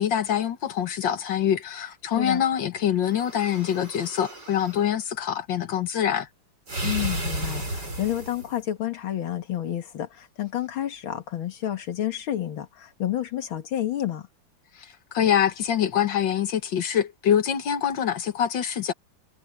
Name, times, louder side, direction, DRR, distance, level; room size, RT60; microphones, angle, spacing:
voice 1, 0.0-6.3 14.8-18.9, left 9 dB, 65° left, 2.0 m, -25 dB
sound 1, 3.1-4.8 6.7-8.6, right 1 dB, 55° right, 8.5 m, -33 dB
voice 2, 6.8-14.3, left 12 dB, 80° left, 2.4 m, -30 dB
omnidirectional pair, 2.2 m